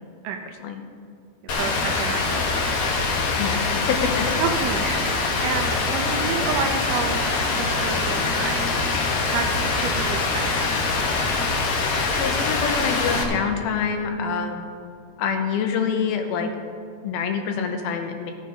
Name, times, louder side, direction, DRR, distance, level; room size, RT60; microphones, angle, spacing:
voice 1, 1.4-2.8 4.4-8.8 9.3-10.6, right 6 dB, 80° right, 4 dB, 1.9 m, -30 dB
Rain, 1.5-13.2, left 3 dB, 65° left, 1.6 m, -24 dB
voice 2, 3.4-4.2 12.2-14.7 15.2-16.5 17.0-18.3, left 6 dB, 85° left, 5 dB, 2.9 m, -26 dB
15.5 x 7.4 x 5.2 m, 2.3 s
omnidirectional pair, 4.2 m